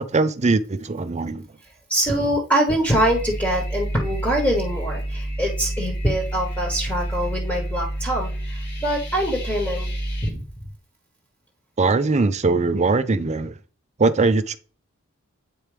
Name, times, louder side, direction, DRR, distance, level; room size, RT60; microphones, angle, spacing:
voice 1, 0.0-1.5 11.8-13.5 14.0-14.6, right 3 dB, 30° right, 0.5 m, -21 dB
voice 2, 1.9-9.9 10.2-10.4, equal, 10° left, 1.3 m, -24 dB
sound 1, 2.9-10.3, right 1 dB, 50° left, 1.8 m, -29 dB
8.5 x 4.6 x 3.3 m
head